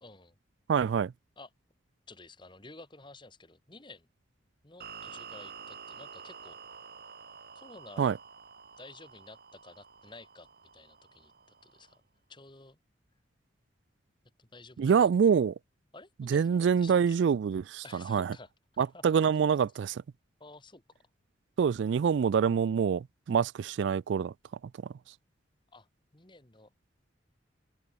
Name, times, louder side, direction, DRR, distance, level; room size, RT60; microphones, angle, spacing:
voice 1, 0.0-0.4 1.4-1.5 2.1-4.1 4.6-6.6 7.5-8.1 8.8-10.5 10.7-12.0 12.3-12.8 14.4-15.1 15.9-17.2 17.8-19.2 20.4-20.8 25.7-26.7, left 3 dB, 25° left, 2.1 m, -52 dB
voice 2, 0.7-1.1 8.0-8.2 14.8-15.5 16.3-17.8 18.1-18.3 18.8-20.0 21.6-24.3, right 7 dB, 65° right, 0.3 m, -25 dB
sound 1, 4.8-12.0, right 6 dB, 50° right, 1.4 m, -49 dB
open air
head